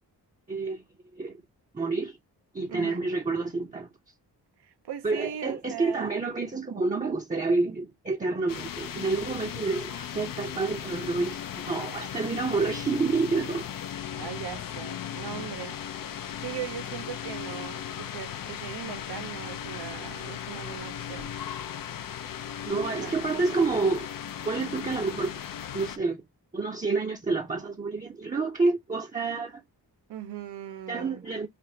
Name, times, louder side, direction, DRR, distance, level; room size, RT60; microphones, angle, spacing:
voice 1, 0.5-0.8 1.1-1.4 1.7-2.2 2.5-3.9 5.0-13.7 22.6-24.1 24.4-25.3 25.7-26.2 26.5-29.6 30.9-31.5, right 3 dB, 20° right, 0.7 m, -28 dB
voice 2, 2.7-3.0 4.6-6.2 14.2-16.1 16.4-21.3 23.0-23.4 30.1-31.2, right 10 dB, 75° right, 0.7 m, -39 dB
sound 1, 8.5-26.0, left 9 dB, 55° left, 0.5 m, -37 dB
3.3 x 2.5 x 2.7 m
cardioid pair, 85°, 40 cm